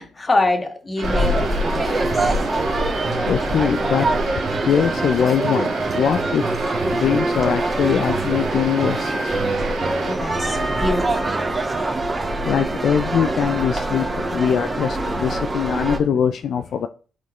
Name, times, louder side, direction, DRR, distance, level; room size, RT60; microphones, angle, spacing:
voice 1, 0.0-1.5 1.7-2.3 9.9-11.3, left 2 dB, 25° left, 1.8 m, -25 dB
sound 1, 1.0-16.0, right 2 dB, 25° right, 1.7 m, -23 dB
sound 2, 1.0-10.2, right 4 dB, 90° right, 2.4 m, -33 dB
voice 2, 3.3-4.1 4.7-6.4 6.9-9.3 12.5-16.9, left 8 dB, 65° left, 0.4 m, -22 dB
12.0 x 4.2 x 3.2 m
cardioid pair, 90°, 0 cm